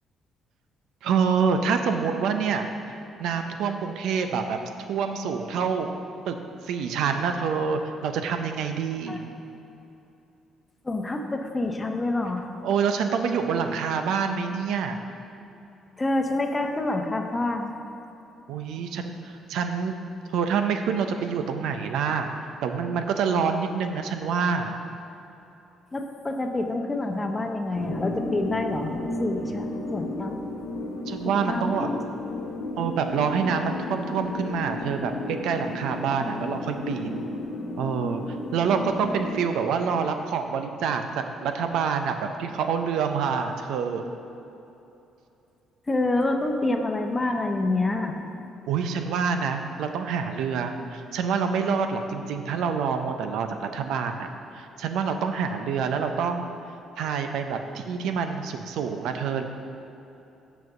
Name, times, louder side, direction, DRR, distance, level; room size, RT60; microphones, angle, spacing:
voice 1, 1.0-5.9 6.3-6.4 6.6-9.2 12.6-15.0 18.5-19.9 20.3-22.3 22.6-24.8 31.1-31.9 32.8-37.3 37.8-38.2 38.5-41.0 41.4-44.0 48.7-54.3 54.5-56.5 57.0-59.4, right 6 dB, 80° right, 6 dB, 0.5 m, -27 dB
voice 2, 10.8-12.5 16.0-17.7 25.9-28.9 29.2-30.4 31.2-32.0 45.9-48.1, left 2 dB, 20° left, 4 dB, 0.8 m, -27 dB
sound 1, 27.7-39.5, left 2 dB, 70° left, 1.0 m, -34 dB
5.9 x 5.4 x 6.7 m, 2.9 s
cardioid pair, 85°, 0 cm